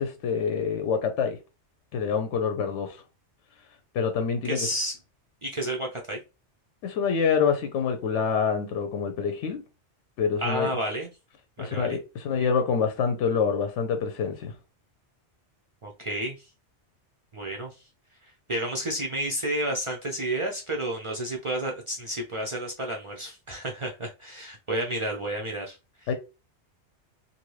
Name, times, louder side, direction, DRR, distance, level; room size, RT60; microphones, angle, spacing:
voice 1, 0.0-1.4 1.9-3.0 3.9-4.7 6.8-9.6 10.2-10.7 11.6-14.5 26.1-26.2, left 6 dB, 90° left, 0.9 m, -26 dB
voice 2, 4.4-4.9 5.4-6.2 10.4-11.1 11.6-12.0 15.8-16.5 17.3-17.8 18.5-26.1, right 1 dB, 50° right, 0.3 m, -31 dB
2.6 x 2.6 x 3.1 m
omnidirectional pair, 1.2 m